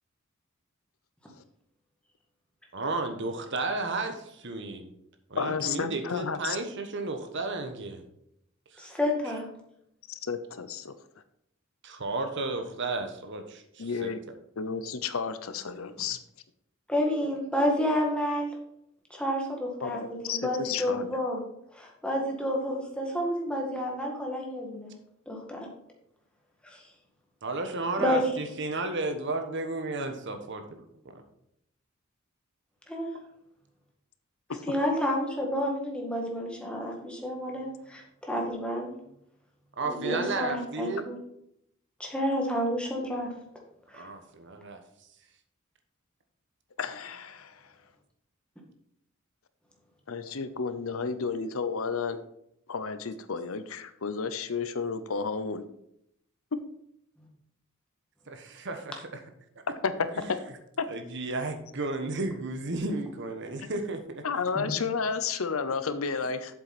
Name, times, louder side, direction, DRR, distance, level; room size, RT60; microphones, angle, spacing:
voice 1, 2.7-4.9 5.3-8.0 8.7-8.9 9.2-9.3 11.8-14.1 27.4-30.8 31.1-31.2 39.8-41.1 43.9-44.8 58.3-59.1 60.1-60.3 60.9-64.2, right 3 dB, 60° right, 6 dB, 1.2 m, -33 dB
voice 2, 5.4-6.6 10.1-10.9 13.8-14.2 14.6-16.2 19.8-21.1 34.5-34.6 46.8-47.6 50.1-52.2 52.7-55.6 56.5-56.6 59.8-59.9 60.3-60.4 60.8-60.9 63.6-63.7 64.2-66.5, left 5 dB, 85° left, 12 dB, 0.7 m, -32 dB
voice 3, 8.8-9.5 16.9-18.5 19.1-21.4 21.7-24.9 25.3-25.7 26.6-26.8 28.0-28.2 32.9-33.1 34.7-38.9 39.9-41.2 42.0-43.3 43.9-44.1 64.6-64.7, equal, 5° left, -1 dB, 1.9 m, -30 dB
7.6 x 7.6 x 4.2 m, 0.76 s
head